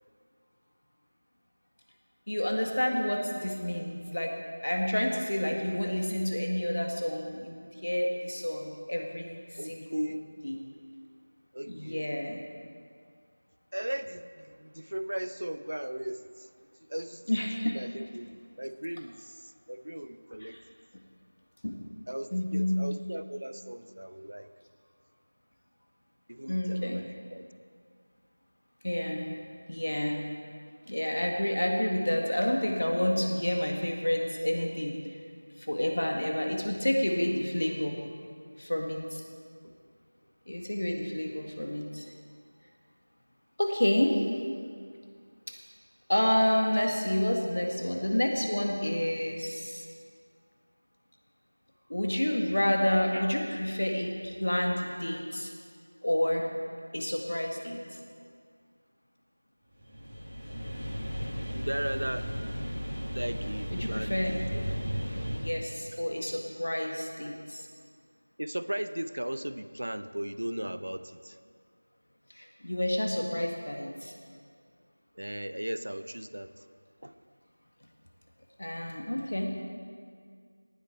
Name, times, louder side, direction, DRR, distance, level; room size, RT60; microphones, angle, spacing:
voice 1, 2.3-4.3 4.6-10.1 10.4-10.6 11.7-12.4 17.3-17.8 20.4-20.6 21.6-21.7 22.3-22.8 26.5-27.0 28.8-29.3 29.7-30.3 30.8-35.0 35.6-38.0 38.6-39.2 40.5-42.1 43.6-44.2 46.1-49.9 51.9-55.5 56.0-56.5 56.9-57.8 63.7-64.3 65.3-67.7 72.3-74.1 78.6-79.5, left 1 dB, 60° left, 2 dB, 1.7 m, -29 dB
voice 2, 9.6-10.3 11.5-12.1 13.7-16.5 16.9-17.2 17.7-20.6 22.1-24.5 26.3-27.5 53.1-53.2 61.5-62.3 63.1-64.7 68.4-71.4 75.2-76.5 77.0-77.1, right 1 dB, 65° right, 12 dB, 0.6 m, -37 dB
sound 1, 59.7-65.4, equal, 5° right, 1.9 m, -35 dB
18.0 x 7.9 x 4.5 m, 2.1 s
figure-of-eight pair, 175°, 0 cm